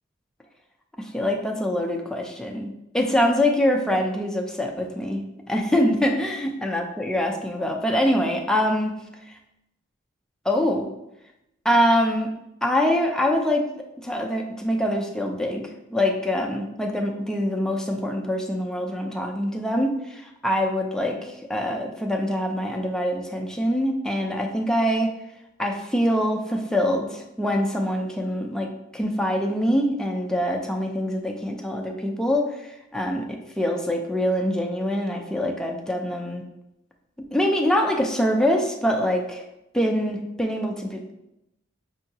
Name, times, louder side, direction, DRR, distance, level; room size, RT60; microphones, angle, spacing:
voice 1, 1.1-2.7 2.9-8.9 10.5-10.9 11.6-12.3 12.6-13.7 14.0-25.1 25.6-33.2 33.6-36.4 37.3-39.5 39.7-41.1, equal, 5° left, 2 dB, 0.4 m, -24 dB
5.4 x 2.8 x 2.8 m, 0.88 s
head